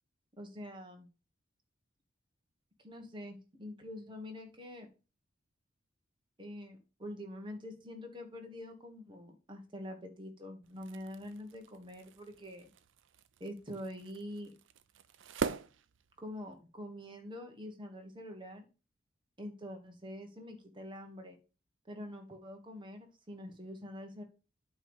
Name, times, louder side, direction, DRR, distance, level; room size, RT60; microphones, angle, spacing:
voice 1, 0.4-1.1 2.8-4.9 6.4-12.7 13.4-14.5 16.2-18.7 19.4-21.4 21.9-24.2, left 1 dB, 25° right, 4 dB, 1.4 m, -45 dB
sound 1, 10.6-16.6, right 5 dB, 70° right, 0.5 m, -43 dB
8.9 x 3.2 x 6.3 m, 0.33 s
head